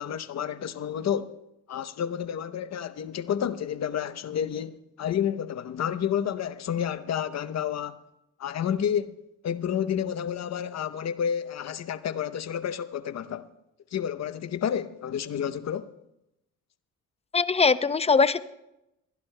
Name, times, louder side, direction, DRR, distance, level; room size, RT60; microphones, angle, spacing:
voice 1, 0.0-1.4 1.7-8.0 8.4-9.2 9.4-13.5 13.9-15.9, left 9 dB, 50° left, 0.8 m, -30 dB
voice 2, 17.3-18.4, left 5 dB, 20° left, 0.5 m, -21 dB
27.5 x 11.5 x 2.2 m
supercardioid pair, 65°, 35 cm